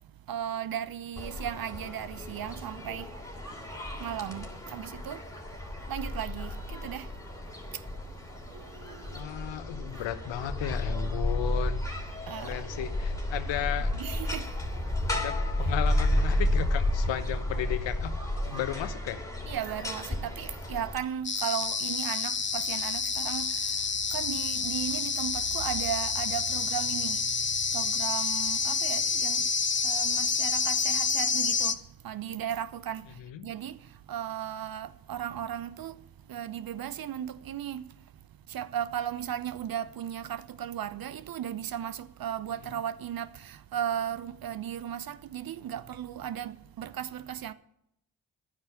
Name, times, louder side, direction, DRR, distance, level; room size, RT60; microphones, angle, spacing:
voice 1, 0.3-3.1 4.0-5.2 5.9-7.1 8.5-9.0 12.3-12.6 13.9-14.5 19.5-23.8 24.1-27.3 27.7-29.5 29.8-31.8 32.0-33.1 33.4-33.8 34.1-36.0 36.3-37.9 38.5-47.5, right 10 dB, 45° right, 0.8 m, -36 dB
sound 1, 1.2-21.0, left 1 dB, 5° left, 3.1 m, -32 dB
voice 2, 9.1-11.8 12.4-13.9 15.1-18.1 18.4-19.2 33.2-33.5, left 12 dB, 60° left, 1.1 m, -34 dB
sound 2, 21.2-31.7, left 5 dB, 25° left, 0.9 m, -28 dB
12.0 x 9.8 x 6.8 m
hypercardioid pair, 40°, 50 cm